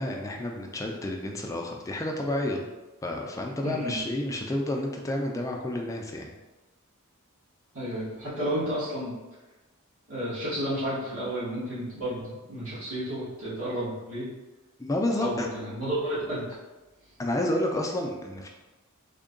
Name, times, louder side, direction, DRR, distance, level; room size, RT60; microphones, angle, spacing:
voice 1, 0.0-2.7 3.0-6.3 14.8-15.5 17.2-18.5, left 1 dB, 15° left, 1 dB, 0.3 m, -30 dB
voice 2, 3.6-4.0 7.7-9.1 10.1-14.3 15.2-16.4, equal, 75° right, -11 dB, 1.4 m, -31 dB
3.6 x 2.2 x 3.7 m, 1.1 s
head